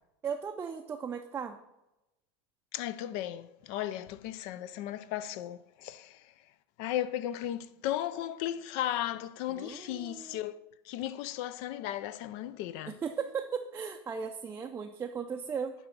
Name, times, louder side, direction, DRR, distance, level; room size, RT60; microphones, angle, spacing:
voice 1, 0.2-1.6 9.5-10.4 12.9-15.7, right 6 dB, 20° right, 0.4 m, -37 dB
voice 2, 2.7-6.3 6.8-10.6 10.8-12.9, left 12 dB, 55° left, 0.4 m, -35 dB
10.0 x 3.4 x 5.6 m
supercardioid pair, 115°, 13 cm